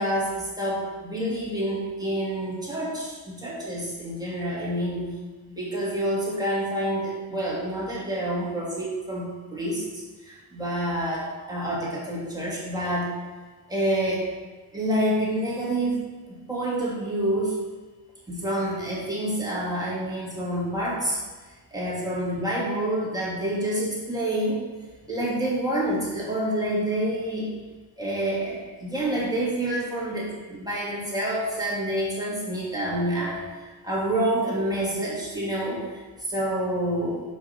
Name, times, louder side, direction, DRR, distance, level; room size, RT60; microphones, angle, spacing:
voice 1, 0.0-5.0 5.5-13.1 13.7-14.3 14.7-17.5 18.3-21.2 21.7-24.6 25.1-27.5 28.0-37.2, right 1 dB, 10° right, -7 dB, 2.5 m, -28 dB
5.4 x 5.2 x 5.9 m, 1.3 s
cardioid pair, 95°, 40 cm